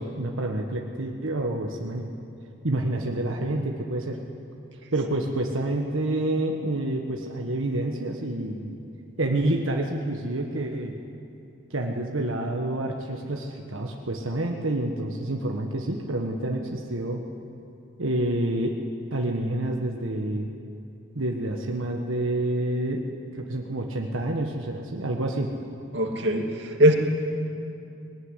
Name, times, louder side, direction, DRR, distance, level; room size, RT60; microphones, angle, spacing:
voice 1, 0.0-2.1 2.6-4.2 4.9-8.8 9.2-10.9 11.7-17.2 18.0-18.8 19.1-20.5 21.1-23.0 23.3-25.5, right 1 dB, 90° right, 1 dB, 1.5 m, -28 dB
voice 2, 25.9-27.0, right 1 dB, 60° right, 2 dB, 2.5 m, -21 dB
20.5 x 18.0 x 9.9 m, 2.7 s
head